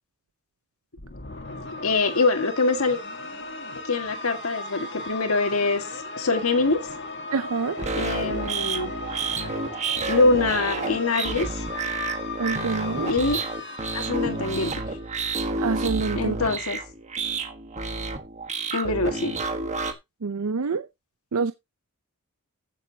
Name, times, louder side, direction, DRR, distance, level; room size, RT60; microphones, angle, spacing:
sound 1, 1.0-15.3, left 3 dB, 55° left, 1.9 m, -37 dB
voice 1, 1.8-3.0 3.8-6.8 7.9-8.9 10.1-11.6 13.1-13.4 13.9-14.8 16.1-16.8 18.7-19.3, left 3 dB, 75° left, 1.8 m, -24 dB
voice 2, 7.3-7.8 12.4-13.1 15.6-16.4 20.2-20.9 21.3-21.5, right 4 dB, 85° right, 0.6 m, -26 dB
sound 2, 7.8-19.9, right 3 dB, 35° right, 1.4 m, -30 dB
15.0 x 7.1 x 2.8 m
head